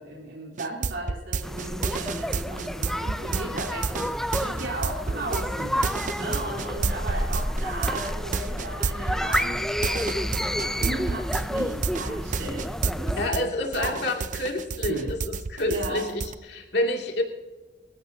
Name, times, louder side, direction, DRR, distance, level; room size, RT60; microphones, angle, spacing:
voice 1, 0.0-13.5 13.7-14.1 14.8-15.1 15.6-16.1, right 2 dB, 80° right, -5 dB, 3.9 m, -35 dB
sound 1, 0.6-13.4 13.7-16.4, right 4 dB, 45° right, 0.6 m, -29 dB
sound 2, 1.4-13.3, equal, 5° left, 0.5 m, -30 dB
voice 2, 13.2-17.2, left 1 dB, 65° left, 1 dB, 2.5 m, -28 dB
25.5 x 14.0 x 2.8 m, 1.2 s
head